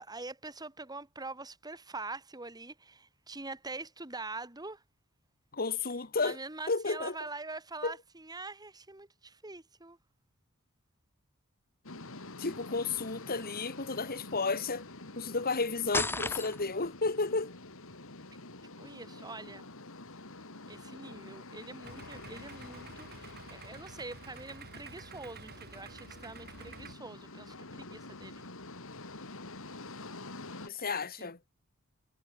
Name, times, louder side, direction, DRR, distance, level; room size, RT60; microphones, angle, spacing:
voice 1, 0.0-4.8 6.2-10.0 18.8-19.7 20.7-28.5 31.2-31.3, right 3 dB, 20° right, 2.2 m, -44 dB
voice 2, 5.5-6.4 6.7-7.1 7.8-7.9 12.4-14.8 15.2-17.5 30.6-31.4, left 4 dB, 45° left, 2.0 m, -32 dB
sound 1, 11.8-30.7, left 2 dB, 65° left, 3.8 m, -47 dB
sound 2, 15.9-16.9, left 3 dB, 10° left, 0.9 m, -32 dB
Idling, 21.8-26.9, right 4 dB, 50° right, 5.5 m, -50 dB
head